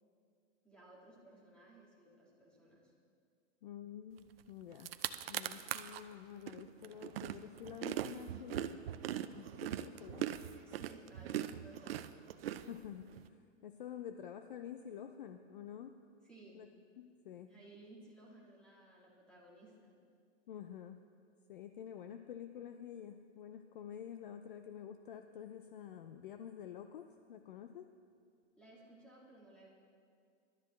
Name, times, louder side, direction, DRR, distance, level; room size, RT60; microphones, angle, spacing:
voice 1, 0.6-2.9 10.5-12.0 16.2-16.6 17.5-19.9 28.6-29.7, right 2 dB, 5° left, -6 dB, 2.1 m, -58 dB
voice 2, 3.6-4.9 5.3-8.8 9.2-10.3 12.6-16.0 16.5-16.7 17.0-17.5 20.5-21.0 21.5-27.9, left 9 dB, 45° left, 8 dB, 0.5 m, -49 dB
sound 1, 4.4-4.5 4.7-6.0 6.5-13.2, right 11 dB, 50° right, 0.5 m, -40 dB
21.0 x 12.5 x 3.1 m, 2.2 s
hypercardioid pair, 160°, 37 cm